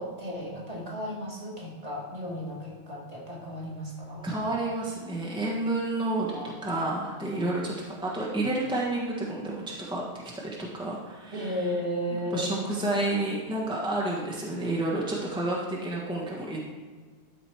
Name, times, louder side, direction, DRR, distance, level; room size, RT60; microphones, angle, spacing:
voice 1, 0.0-4.2 6.3-7.5 7.9-8.0 11.3-13.1, equal, 35° right, -3 dB, 1.9 m, -35 dB
voice 2, 4.2-10.0 10.3-11.5 12.3-16.6, right 2 dB, 5° right, -4 dB, 1.3 m, -30 dB
12.5 x 5.0 x 4.6 m, 1.5 s
omnidirectional pair, 1.1 m